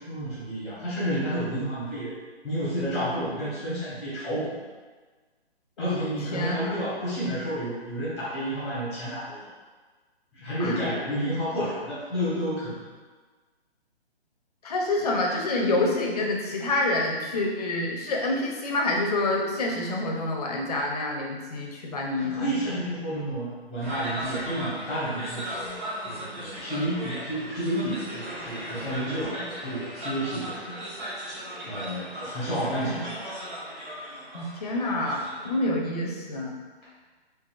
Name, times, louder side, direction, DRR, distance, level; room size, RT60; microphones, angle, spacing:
voice 1, 0.0-2.1 2.4-4.5 5.8-9.4 10.3-12.8 22.2-30.8 31.7-33.1, equal, ahead, -10 dB, 0.8 m, -30 dB
voice 2, 6.3-6.7 10.6-10.8 14.6-22.5 32.7-33.0 34.3-36.6, left 2 dB, 40° left, -1 dB, 0.5 m, -27 dB
sound 1, 23.8-35.5, equal, 45° right, 1.4 m, -37 dB
3.9 x 2.4 x 2.3 m, 1.4 s
hypercardioid pair, 150°, 32 cm